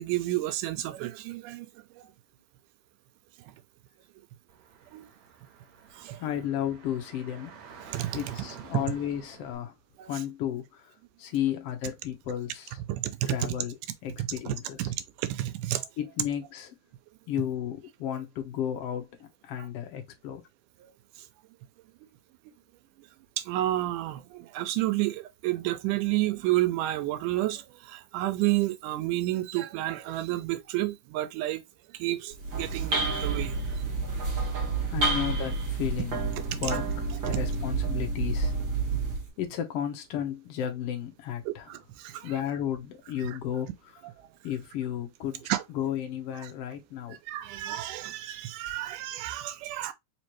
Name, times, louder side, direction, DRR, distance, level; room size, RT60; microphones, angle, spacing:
voice 1, 0.0-1.7 4.9-5.1 5.9-6.2 7.9-8.3 8.7-8.8 10.0-10.1 12.9-13.5 14.2-15.9 23.4-31.6 31.9-33.7 34.3-34.4 36.5-36.6 41.5-42.3 43.2-43.3 45.5-45.6 47.1-49.9, right 15 dB, 90° right, 2.2 m, -30 dB
Car / Traffic noise roadway noise, 4.5-9.6, right 6 dB, 70° right, 2.1 m, -49 dB
voice 2, 6.2-7.6 8.1-9.7 10.1-10.9 11.2-12.8 13.3-13.7 14.0-14.9 16.0-16.7 17.3-19.2 19.4-20.4 34.9-36.3 36.6-38.5 39.4-41.7 42.2-43.7 44.4-45.4 45.7-47.2, left 10 dB, 65° left, 1.7 m, -33 dB
sound 1, 32.3-39.3, right 4 dB, 45° right, 1.9 m, -29 dB
5.0 x 3.1 x 3.0 m
omnidirectional pair, 3.6 m